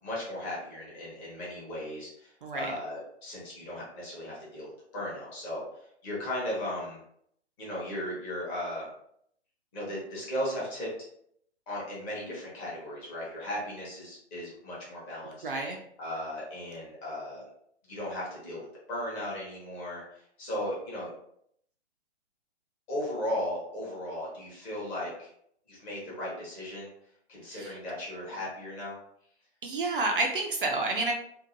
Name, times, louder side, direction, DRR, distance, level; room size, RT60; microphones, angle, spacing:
voice 1, 0.0-5.6 6.0-7.0 7.6-8.9 9.7-10.9 11.7-15.4 16.0-17.4 17.9-21.1 22.9-25.3 25.7-26.9 27.3-29.0, left 1 dB, 20° left, -6 dB, 0.8 m, -36 dB
voice 2, 2.4-2.7 15.4-15.8 27.5-27.8 29.6-31.1, right 2 dB, 50° right, 1 dB, 0.4 m, -29 dB
2.6 x 2.4 x 2.5 m, 0.70 s
figure-of-eight pair, 125°, 35 cm